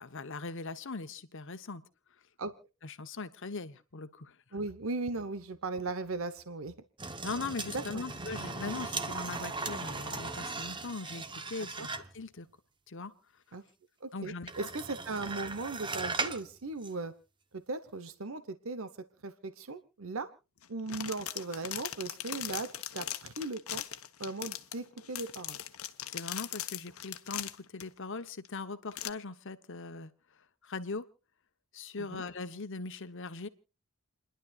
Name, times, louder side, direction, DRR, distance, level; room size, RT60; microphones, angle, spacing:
voice 1, 0.0-1.8 2.8-4.4 7.2-11.9 12.1-12.5 12.9-13.1 14.1-14.5 26.1-30.1 30.6-31.0 31.7-33.5, left 3 dB, 60° left, 11 dB, 1.0 m, -40 dB
voice 2, 4.5-6.7 7.7-8.1 11.8-11.9 13.5-13.6 14.0-17.1 17.5-18.9 19.2-20.3 20.7-23.8 24.2-25.6 32.1-32.2, right 3 dB, 70° right, 12 dB, 1.0 m, -38 dB
sound 1, 7.0-12.2 14.5-16.5 16.8-16.9, right 3 dB, 20° right, 1.0 m, -38 dB
sound 2, 20.6-27.8 28.4-28.5 28.9-29.1, left 11 dB, 90° left, 1.0 m, -40 dB
29.5 x 11.0 x 2.4 m, 0.30 s
head